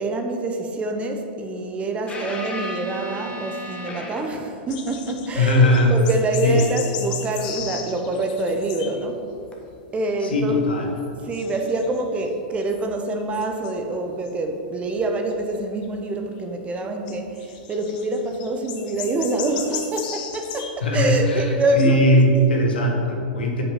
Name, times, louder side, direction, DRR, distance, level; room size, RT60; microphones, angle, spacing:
voice 1, 0.0-9.2 9.9-10.6 11.2-22.0 22.3-22.5, right 2 dB, 25° right, 4 dB, 0.9 m, -26 dB
sound 1, 2.1-4.6 7.6-7.7 9.5-9.7, left 1 dB, 20° left, 1.3 m, -34 dB
sound 2, 4.7-9.1 9.3-9.9 10.3-10.7 11.0-13.9 14.3-14.4 14.9-15.8 17.1-20.8 21.1-21.2 21.5-21.9, left 8 dB, 55° left, 1.0 m, -36 dB
voice 2, 5.4-5.9 6.4-6.6 10.3-10.9 20.8-21.5 21.7-23.6, left 1 dB, 85° left, 1 dB, 1.5 m, -19 dB
7.3 x 5.4 x 6.0 m, 2.5 s
hypercardioid pair, 110°, 5 cm